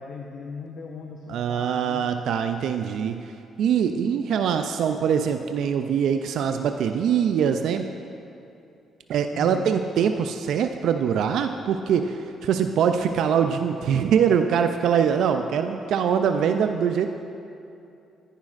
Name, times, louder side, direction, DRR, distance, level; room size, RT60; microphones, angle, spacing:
voice 1, 0.0-2.1 4.0-4.5 9.3-9.8, left 5 dB, 65° left, 1 dB, 0.6 m, -39 dB
voice 2, 1.3-3.2 3.6-7.9 9.1-17.1, right 7 dB, 75° right, 7 dB, 0.3 m, -23 dB
10.5 x 10.0 x 2.5 m, 2.7 s
cardioid pair, 90°, 0 cm